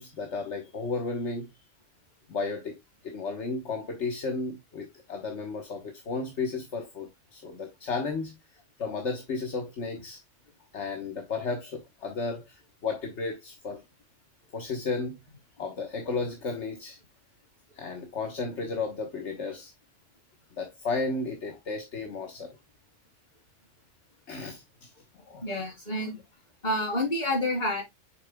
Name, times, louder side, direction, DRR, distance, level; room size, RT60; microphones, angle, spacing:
voice 1, 0.0-1.5 2.3-2.8 3.0-8.3 8.8-10.2 10.7-13.8 14.5-15.2 15.6-17.0 17.7-19.7 20.6-22.6 24.3-25.4, left 4 dB, 70° left, 1.5 m, -33 dB
voice 2, 25.4-26.2 26.6-27.8, left 1 dB, 40° left, 3.5 m, -28 dB
7.3 x 6.7 x 2.2 m
omnidirectional pair, 1.2 m